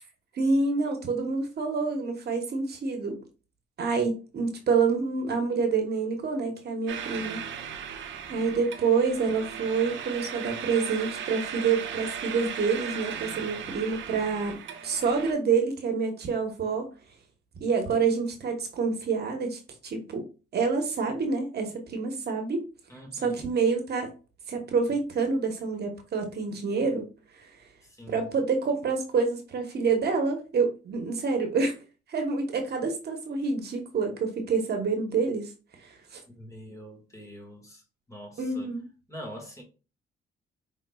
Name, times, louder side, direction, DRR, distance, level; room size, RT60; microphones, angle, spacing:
voice 1, 0.3-3.2 3.8-7.4 8.3-16.9 17.6-20.2 20.5-22.6 23.2-24.1 24.5-27.1 27.4-27.5 28.1-31.8 32.1-35.5 35.8-36.2 38.4-38.8, right 5 dB, 55° right, 1.1 m, -27 dB
sound 1, 6.9-15.3, right 8 dB, 75° right, 0.8 m, -37 dB
voice 2, 22.9-23.4 27.8-28.3 36.3-38.7 39.1-39.6, equal, 15° left, 1.7 m, -44 dB
5.3 x 3.6 x 2.3 m
cardioid pair, 90°, 20 cm